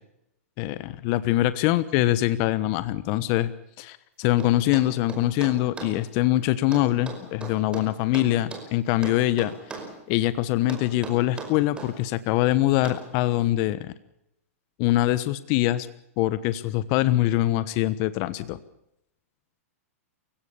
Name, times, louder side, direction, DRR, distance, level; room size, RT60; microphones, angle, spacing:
voice 1, 0.6-3.5 3.8-9.5 10.1-13.9 14.8-15.9 16.2-18.6, left 15 dB, 40° left, 15 dB, 1.2 m, -23 dB
sound 1, 4.4-6.0 6.7-8.7 9.0-10.0 10.7-11.9 12.8-13.1, right 3 dB, 10° right, 5.3 m, -38 dB
28.0 x 16.5 x 7.0 m, 0.82 s
hypercardioid pair, 140°, 8 cm